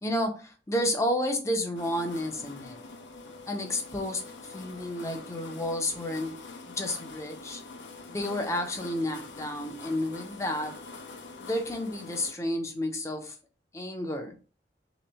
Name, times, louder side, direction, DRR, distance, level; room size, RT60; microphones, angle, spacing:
voice 1, 0.0-2.8 3.5-6.4 6.7-7.6 8.1-10.8 11.4-13.4 13.7-14.3, left 1 dB, 15° left, 0.7 m, -31 dB
sound 1, 1.7-12.3, left 3 dB, 85° left, 0.6 m, -45 dB
3.2 x 3.1 x 3.4 m
head